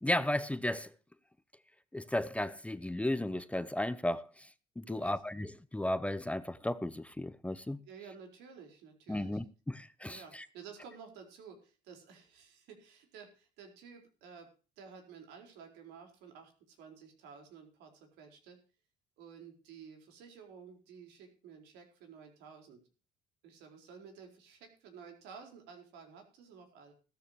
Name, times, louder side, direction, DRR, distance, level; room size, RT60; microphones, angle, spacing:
voice 1, 0.0-0.9 1.9-4.5 4.8-7.8 9.1-10.5, left 1 dB, 5° left, 0.7 m, -34 dB
voice 2, 7.8-9.4 10.1-14.5 14.8-18.6 19.2-22.8 23.4-26.9, right 6 dB, 90° right, 4.6 m, -53 dB
15.5 x 13.5 x 3.0 m
cardioid pair, 110°, 17 cm